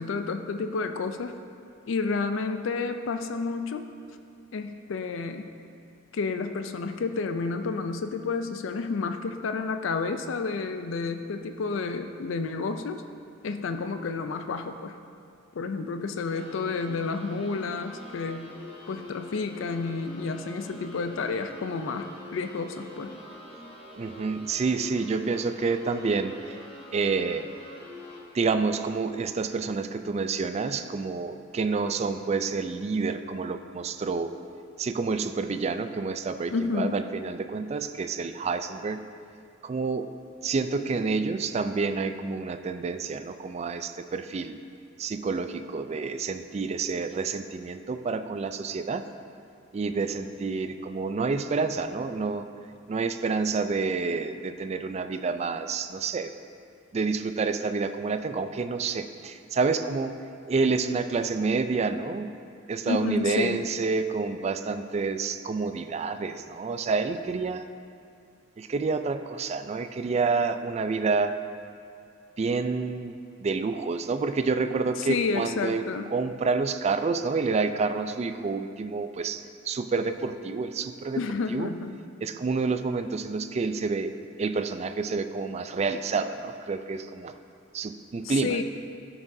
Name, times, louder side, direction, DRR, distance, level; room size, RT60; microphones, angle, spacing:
voice 1, 0.0-1.4 1.9-3.9 4.5-5.5 6.1-13.0 13.4-15.0 15.5-18.5 18.9-23.1 36.5-37.0 62.9-63.7 75.0-76.1 81.2-82.0 88.2-88.6, left 4 dB, 70° left, 7 dB, 0.4 m, -30 dB
sound 1, 16.3-28.2, left 2 dB, 25° left, 1.0 m, -44 dB
voice 2, 24.0-26.6 26.9-27.5 28.3-34.3 34.8-39.0 39.6-40.1 40.4-44.6 45.0-49.0 49.7-52.5 52.9-56.3 56.9-60.1 60.5-62.3 62.7-67.6 68.6-71.3 72.4-73.1 73.4-75.8 76.1-81.2 81.5-81.7 82.2-87.3 87.7-88.6, right 4 dB, 35° right, 9 dB, 0.3 m, -28 dB
13.5 x 6.0 x 2.7 m, 2.3 s
head